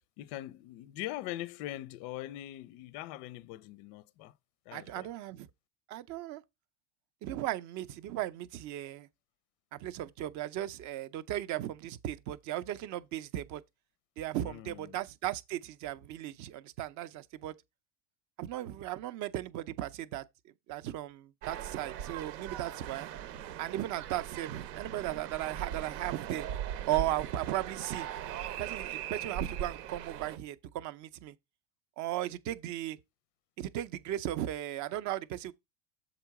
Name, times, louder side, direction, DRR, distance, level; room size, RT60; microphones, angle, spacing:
voice 1, 0.2-4.4 4.7-5.1 14.4-15.0, left 15 dB, 45° left, 0.4 m, -42 dB
voice 2, 4.7-5.5 5.9-6.4 7.2-9.1 9.7-13.6 14.2-17.5 18.4-20.2 20.7-23.1 23.6-26.5 26.9-28.1 28.6-31.3 32.0-33.0 33.6-35.5, right 13 dB, 40° right, 0.5 m, -36 dB
sound 1, 21.4-30.4, right 10 dB, 85° right, 1.1 m, -40 dB
7.3 x 3.9 x 4.6 m
supercardioid pair, 135°, 47 cm